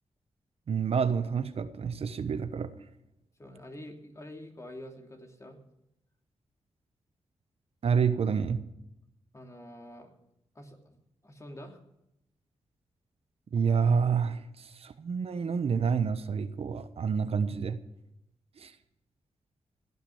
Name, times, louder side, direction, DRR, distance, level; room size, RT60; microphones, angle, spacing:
voice 1, 0.7-2.7 7.8-8.6 13.5-17.8 18.6-18.7, right 6 dB, 65° right, 10 dB, 1.0 m, -28 dB
voice 2, 3.4-5.6 9.3-10.1 10.5-11.8, left 1 dB, 25° left, 2 dB, 3.0 m, -47 dB
17.0 x 9.6 x 7.1 m, 0.84 s
cardioid pair, 70°, 11 cm